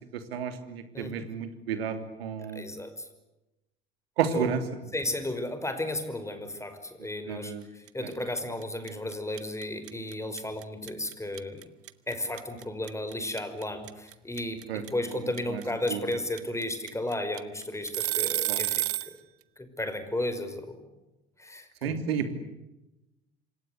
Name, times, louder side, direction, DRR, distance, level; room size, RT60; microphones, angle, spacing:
voice 1, 0.1-2.6 4.2-4.6 7.3-7.6 14.7-14.8 15.5-15.6 15.9-16.0 18.5-18.6 21.8-22.3, right 7 dB, 70° right, 9 dB, 3.1 m, -31 dB
voice 2, 0.9-1.3 2.6-3.0 4.3-4.5 4.9-11.6 12.1-18.8 19.6-20.8 21.4-22.0, left 1 dB, 10° left, 9 dB, 5.5 m, -34 dB
sound 1, 7.9-8.1 8.4-19.1, right 16 dB, 45° right, 1.3 m, -30 dB
27.0 x 26.0 x 8.1 m, 0.96 s
figure-of-eight pair, 60°, 32 cm